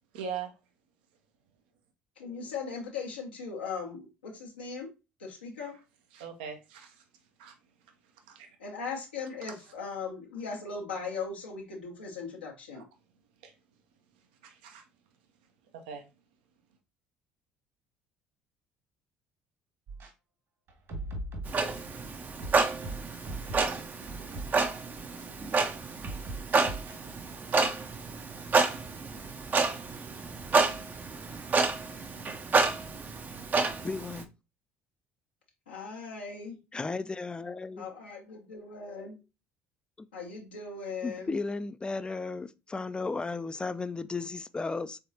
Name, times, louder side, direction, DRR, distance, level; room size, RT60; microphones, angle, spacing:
voice 1, 0.1-0.5 6.1-7.0 7.4-7.5 8.3-8.5 12.7-12.8 13.4-13.5 14.4-14.8 15.9-16.0, right 6 dB, 75° right, 0.7 m, -40 dB
voice 2, 2.2-4.9 5.2-5.8 8.6-12.8 35.7-36.6 37.8-39.2 40.1-41.3, left 5 dB, 85° left, 0.9 m, -38 dB
sound 1, 19.9-20.1 20.7-22.0 22.4-23.8 24.3-24.5 25.2-25.3 26.0-27.0, right 2 dB, 55° right, 1.7 m, -39 dB
Clock, 21.5-34.2, right 4 dB, 35° right, 0.6 m, -29 dB
voice 3, 33.8-34.3 36.7-37.9 41.0-45.0, left 3 dB, 15° left, 0.3 m, -34 dB
3.8 x 3.4 x 2.7 m
hypercardioid pair, 55°, 5 cm